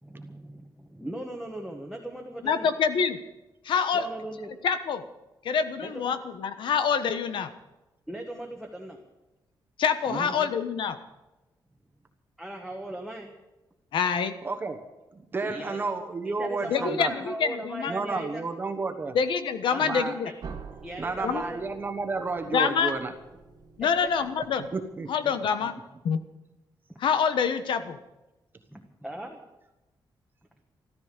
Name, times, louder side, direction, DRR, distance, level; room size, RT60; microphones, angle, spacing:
voice 1, 0.0-2.7 3.9-4.5 5.8-6.1 8.1-9.0 10.3-10.5 12.4-13.3 15.4-15.8 16.2-18.5 19.7-19.8 20.2-20.3 20.8-21.6 23.8-24.1 26.9-27.0 28.7-29.4, right 1 dB, ahead, 0 dB, 1.3 m, -38 dB
voice 2, 2.4-3.2 3.6-4.0 4.6-5.0 5.4-7.5 9.8-11.0 13.9-14.4 16.7-17.9 19.1-20.3 21.2-21.4 22.5-22.9 23.8-24.6 25.1-25.8 26.0-26.2 27.0-28.0, left 6 dB, 75° left, 11 dB, 1.2 m, -26 dB
voice 3, 14.4-14.8 15.3-17.1 17.9-19.1 19.8-20.1 21.0-23.1 24.7-25.3, right 3 dB, 25° right, 5 dB, 1.2 m, -31 dB
sound 1, 20.4-25.2, right 5 dB, 55° right, 1.9 m, -47 dB
14.0 x 13.5 x 6.8 m, 1.0 s
wide cardioid pair, 180°, 8 cm